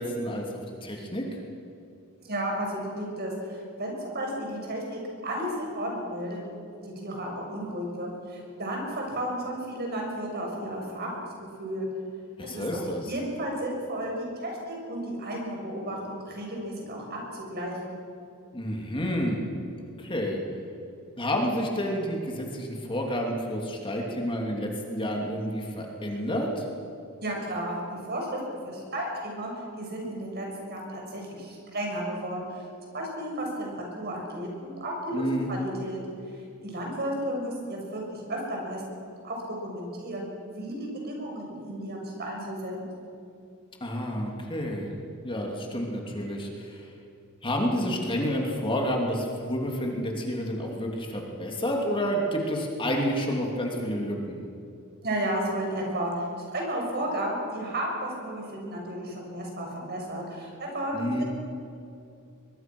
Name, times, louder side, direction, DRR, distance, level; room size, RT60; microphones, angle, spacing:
voice 1, 0.0-1.4 12.4-13.1 18.5-19.5 20.0-20.4 21.2-26.7 35.1-35.5 43.8-44.9 45.2-46.9 47.4-54.4 60.9-61.2, equal, 25° left, 0 dB, 2.9 m, -29 dB
voice 2, 2.2-6.4 6.8-11.3 11.6-11.9 12.4-12.8 13.0-17.8 27.2-28.4 28.6-29.5 29.8-32.7 32.9-33.7 34.0-36.0 36.6-42.8 55.0-56.3 56.5-61.2, right 1 dB, 50° right, 0 dB, 6.6 m, -33 dB
23.0 x 23.0 x 6.3 m, 2.6 s
head